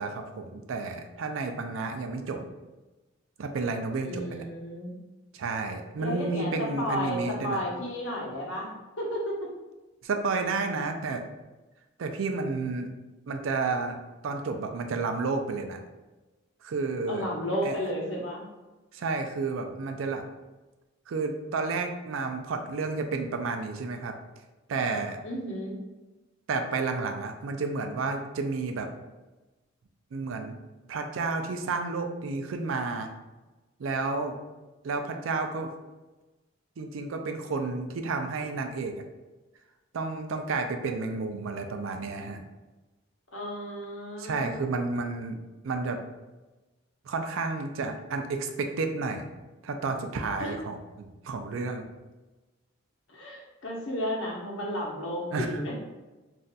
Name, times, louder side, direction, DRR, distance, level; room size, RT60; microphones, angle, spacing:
voice 1, 0.0-2.5 3.4-4.4 5.3-7.6 10.0-11.2 12.0-12.9 13.3-14.0 14.2-15.8 16.6-17.2 17.6-17.8 18.9-20.2 21.1-24.2 24.7-25.2 26.5-28.9 30.1-30.6 30.9-33.1 33.8-34.4 34.8-35.7 36.8-38.9 39.9-42.4 44.2-45.4 45.6-46.0 47.1-49.3 49.6-51.8 55.3-55.6, right 4 dB, 85° right, 5 dB, 0.4 m, -31 dB
voice 2, 4.0-4.9 6.0-8.7 9.0-9.5 17.1-18.4 25.2-25.8 43.3-44.6 50.4-50.5 53.1-55.7, equal, 75° left, -2 dB, 0.8 m, -33 dB
3.9 x 2.5 x 2.2 m, 1.1 s
head